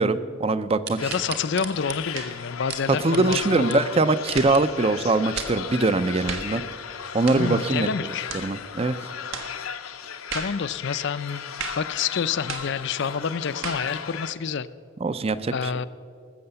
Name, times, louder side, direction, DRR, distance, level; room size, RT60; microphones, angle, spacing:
voice 1, 0.0-1.1 3.0-6.6 7.1-9.0 15.0-15.7, right 3 dB, 30° right, 13 dB, 0.5 m, -23 dB
sound 1, 0.9-3.4 3.7-3.8 4.2-4.6 5.1-5.6 6.2-6.3, right 7 dB, 50° right, 1.3 m, -36 dB
sound 2, 1.0-14.3, left 8 dB, 85° left, 0.7 m, -36 dB
voice 2, 1.0-3.8 7.4-8.3 10.3-14.7 15.5-15.9, left 6 dB, 55° left, 15 dB, 0.5 m, -28 dB
sound 3, 1.1-1.3 2.1-2.4 3.3-3.5 4.3-4.6 5.3-5.6 6.3-6.6 7.3-7.5 8.3-8.5 9.3-9.5 10.3-10.6 11.6-11.9 12.5-12.7 13.6-13.9, right 5 dB, 70° right, 1.4 m, -35 dB
19.5 x 7.7 x 6.9 m, 2.4 s
head